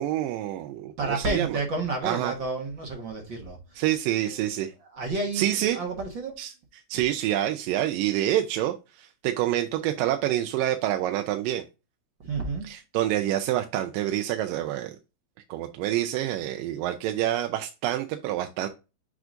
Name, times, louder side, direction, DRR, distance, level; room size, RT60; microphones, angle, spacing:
voice 1, 0.0-1.6 2.0-2.3 3.8-4.7 5.4-5.8 6.4-6.5 6.9-11.6 12.6-14.9 15.5-18.7, right 13 dB, 80° right, 2.2 m, -27 dB
voice 2, 1.0-3.8 4.2-4.5 4.8-5.5 5.7-6.3 12.2-12.7, right 3 dB, 60° right, 1.2 m, -31 dB
8.0 x 4.8 x 2.5 m
omnidirectional pair, 4.1 m